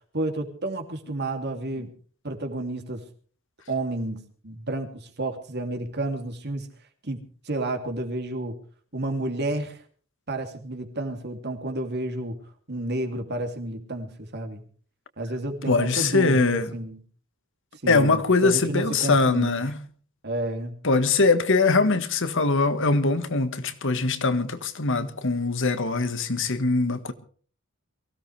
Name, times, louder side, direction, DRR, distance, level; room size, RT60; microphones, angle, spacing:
voice 1, 0.1-1.9 2.2-3.0 3.7-6.7 7.0-8.6 8.9-9.8 10.3-12.4 12.7-14.6 15.2-17.0 17.8-19.7 20.2-20.8, right 2 dB, 50° right, 2.9 m, -31 dB
voice 2, 15.7-16.7 17.9-19.8 20.8-27.1, left 3 dB, 60° left, 1.6 m, -22 dB
23.0 x 16.5 x 3.4 m
head